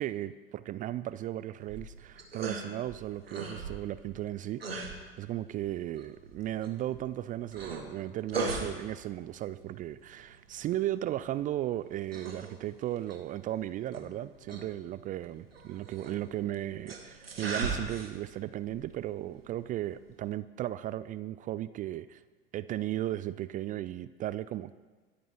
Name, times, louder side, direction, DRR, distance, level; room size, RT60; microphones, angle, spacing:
voice 1, 0.0-22.2 22.5-24.7, right 13 dB, 30° right, 16 dB, 0.4 m, -36 dB
sound 1, 1.6-20.3, right 3 dB, 85° right, 1.8 m, -41 dB
23.0 x 13.5 x 3.0 m, 1.3 s
figure-of-eight pair, 80°, 29 cm